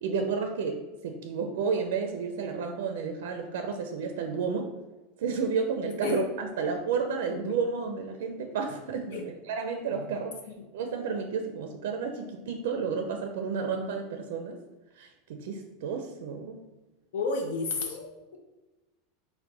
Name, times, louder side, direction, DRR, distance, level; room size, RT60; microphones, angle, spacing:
voice 1, 0.0-4.7 5.2-10.3 10.7-14.6 15.0-16.6, right 5 dB, 75° right, 5 dB, 0.4 m, -31 dB
voice 2, 17.1-18.4, left 4 dB, 75° left, 2 dB, 0.6 m, -32 dB
4.5 x 2.1 x 3.9 m, 1.1 s
supercardioid pair, 160°, 0 cm